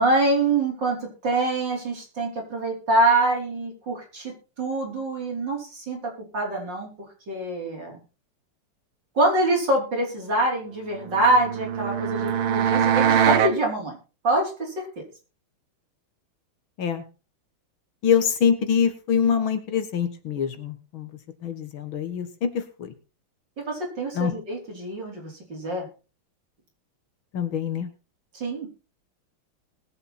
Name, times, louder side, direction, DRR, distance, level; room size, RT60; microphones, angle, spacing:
voice 1, 0.0-6.0 6.3-6.9 7.3-8.0 9.2-14.0 14.2-15.0 23.6-25.9 28.3-28.7, right 2 dB, 55° right, -1 dB, 5.2 m, -25 dB
sound 1, 11.0-13.6, right 9 dB, 70° right, 1.8 m, -22 dB
voice 2, 18.0-21.1 21.4-22.9 24.1-24.3 27.3-27.9, left 7 dB, 70° left, 9 dB, 2.2 m, -24 dB
20.0 x 7.9 x 4.3 m, 0.33 s
omnidirectional pair, 2.4 m